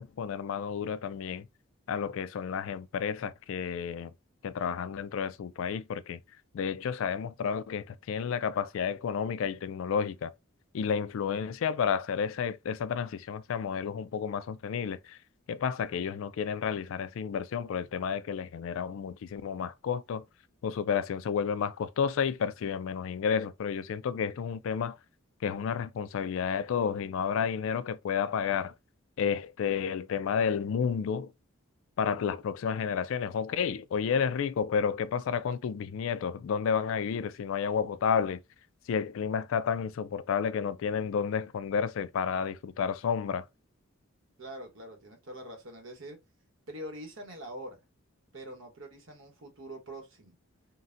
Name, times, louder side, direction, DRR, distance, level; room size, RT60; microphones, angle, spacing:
voice 1, 0.0-1.5 1.9-4.1 4.4-6.2 6.5-10.3 10.7-15.2 15.5-20.2 20.6-25.0 25.4-28.7 29.2-31.3 32.0-38.4 38.9-43.4, left 7 dB, 65° left, 0.3 m, -31 dB
voice 2, 44.4-46.2 46.7-47.8 48.3-50.4, right 1 dB, 60° right, 1.0 m, -44 dB
3.9 x 2.1 x 2.5 m
head